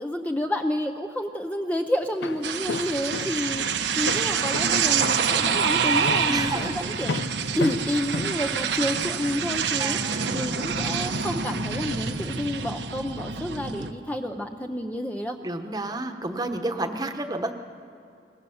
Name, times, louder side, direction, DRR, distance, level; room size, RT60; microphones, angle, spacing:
voice 1, 0.0-7.2 7.6-15.4, left 1 dB, 10° left, 4 dB, 0.7 m, -29 dB
Walk footsteps, 2.0-9.2, left 3 dB, 80° left, 0.7 m, -34 dB
sound 1, 2.4-13.9, right 6 dB, 75° right, 1.1 m, -27 dB
voice 2, 6.3-6.8 9.8-10.6 15.4-17.5, right 2 dB, 20° right, 6 dB, 1.1 m, -31 dB
25.0 x 20.0 x 7.2 m, 2.7 s
head